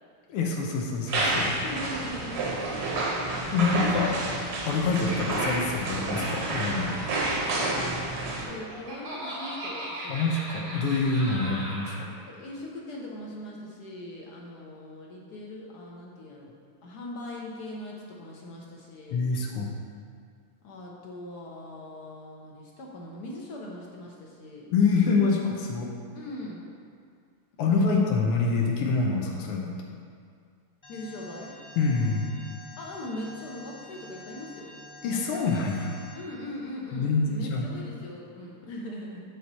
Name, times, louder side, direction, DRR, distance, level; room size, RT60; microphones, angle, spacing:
voice 1, 0.3-1.5 3.5-4.1 4.7-7.0 10.1-12.1 19.1-19.7 24.7-25.9 27.6-29.7 31.8-32.3 35.0-36.0 36.9-37.7, left 4 dB, 85° left, 0 dB, 1.7 m, -26 dB
sound 1, 1.1-8.4, right 2 dB, 70° right, 1.9 m, -29 dB
voice 2, 1.6-2.6 4.7-5.0 7.5-7.9 8.4-10.3 12.3-16.5 16.8-19.2 20.6-24.7 26.1-26.7 27.6-28.3 30.9-31.5 32.7-34.8 36.1-39.2, left 1 dB, 60° left, -2 dB, 1.1 m, -40 dB
Laughter, 8.3-12.0, right 1 dB, 90° right, 2.7 m, -37 dB
Alarm, 30.8-36.1, left 2 dB, 25° left, 0.6 m, -48 dB
6.4 x 6.0 x 4.1 m, 2.2 s
omnidirectional pair, 2.4 m